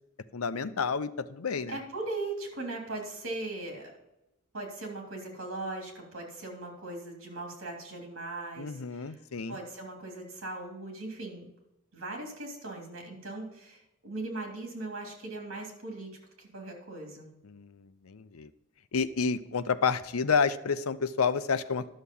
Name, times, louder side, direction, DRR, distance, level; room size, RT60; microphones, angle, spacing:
voice 1, 0.3-1.8 8.6-9.6 17.4-18.5 18.9-21.9, left 5 dB, 90° left, 13 dB, 0.6 m, -30 dB
voice 2, 1.7-3.9 4.5-9.2 9.5-11.5 11.9-17.3, right 2 dB, 70° right, 2 dB, 3.2 m, -39 dB
11.5 x 6.6 x 5.4 m, 0.90 s
head